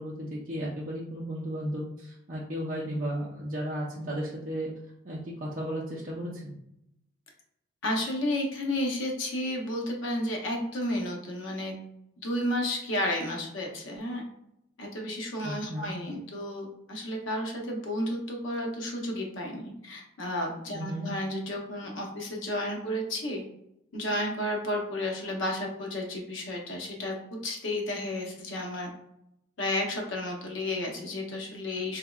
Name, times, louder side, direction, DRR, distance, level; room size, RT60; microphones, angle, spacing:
voice 1, 0.0-4.7 5.0-6.5 15.4-15.9 20.7-21.1, equal, 40° right, -6 dB, 0.5 m, -34 dB
voice 2, 7.8-11.8 12.2-14.3 14.8-23.4 23.9-27.1 27.4-28.9 29.6-32.0, left 1 dB, 75° left, 0 dB, 0.7 m, -32 dB
3.5 x 2.9 x 2.3 m, 0.79 s
head